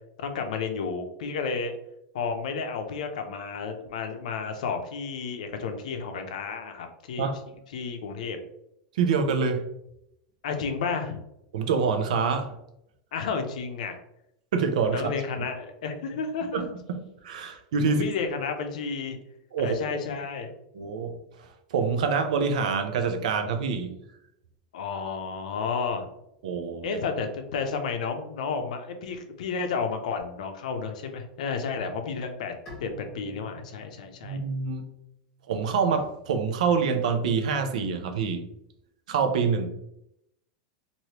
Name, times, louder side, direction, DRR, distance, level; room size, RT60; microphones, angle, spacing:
voice 1, 0.2-1.7 2.1-7.3 7.7-8.4 10.4-11.2 13.1-14.0 14.9-16.7 17.9-19.2 19.6-20.5 24.7-26.1 26.8-34.4, left 5 dB, 80° left, 6 dB, 0.6 m, -32 dB
voice 2, 8.9-9.7 11.5-12.5 14.5-15.1 16.5-18.0 19.5-19.7 20.7-24.0 26.4-27.0 34.2-34.8 35.5-38.4 39.1-39.7, right 5 dB, 80° right, 7 dB, 0.5 m, -26 dB
Bowed string instrument, 32.7-35.9, left 1 dB, 20° left, 1.5 m, -48 dB
3.2 x 2.6 x 2.9 m, 0.80 s
supercardioid pair, 175°, 4 cm